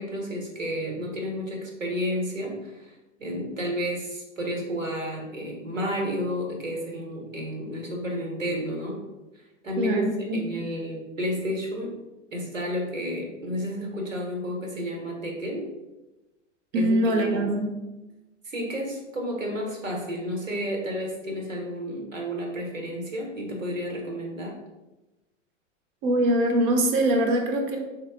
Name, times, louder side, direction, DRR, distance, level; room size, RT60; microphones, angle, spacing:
voice 1, 0.0-9.0 9.6-10.0 10.3-11.9 12.3-15.7 16.7-17.5 18.4-24.5, equal, 90° right, 0 dB, 0.8 m, -31 dB
voice 2, 9.8-10.4 16.7-17.7 26.0-27.8, right 1 dB, 45° right, 3 dB, 0.6 m, -23 dB
3.5 x 2.0 x 3.2 m, 1.0 s
figure-of-eight pair, 90°, 38 cm